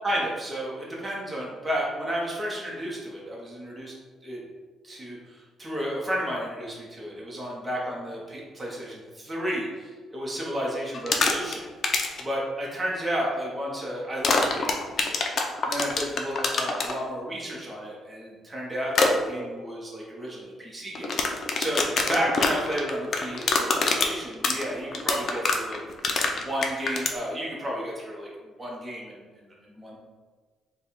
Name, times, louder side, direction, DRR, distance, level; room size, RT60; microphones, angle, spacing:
voice 1, 0.0-3.9 4.2-4.4 4.8-11.6 12.2-15.2 15.6-21.1 21.6-25.8 26.3-30.0, equal, 20° right, -4 dB, 1.0 m, -32 dB
sound 1, 10.9-11.5 11.8-12.2 14.2-16.9 18.9-19.1 20.9-27.1, left 4 dB, 55° left, 0.5 m, -24 dB
3.3 x 2.3 x 4.3 m, 1.5 s
cardioid pair, 90°, 0 cm